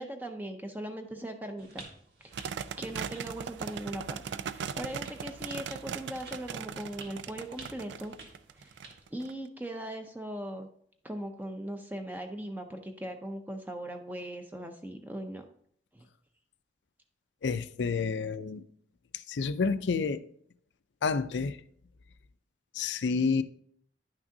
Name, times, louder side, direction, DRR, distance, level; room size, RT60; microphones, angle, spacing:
voice 1, 0.0-1.8 2.2-4.2 4.5-8.1 8.5-8.7 9.1-10.7 11.0-15.4 15.9-16.1, right 1 dB, 10° right, 0.4 m, -39 dB
sound 1, 1.6-9.1, right 3 dB, 65° right, 1.6 m, -52 dB
sound 2, 2.3-9.3, right 7 dB, 85° right, 0.3 m, -39 dB
voice 2, 17.4-18.6 19.3-20.2 21.0-21.6 22.7-23.4, left 5 dB, 85° left, 0.4 m, -29 dB
10.0 x 5.9 x 2.7 m
head